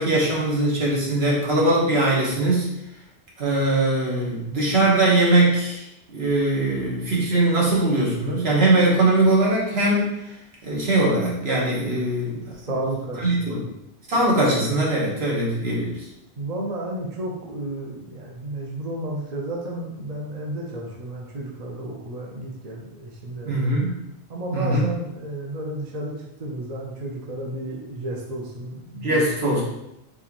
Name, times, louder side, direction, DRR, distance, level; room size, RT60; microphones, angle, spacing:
voice 1, 0.0-2.7 3.4-5.8 6.1-10.1 10.6-12.4 13.2-13.6 14.1-16.0 23.4-23.9 24.5-24.9 29.0-29.6, right 2 dB, 70° right, -5 dB, 1.5 m, -21 dB
voice 2, 12.6-13.6 16.4-23.7 24.3-26.1 26.4-29.3, right 1 dB, 45° right, -2 dB, 0.8 m, -32 dB
4.5 x 3.5 x 3.0 m, 0.85 s
omnidirectional pair, 1.1 m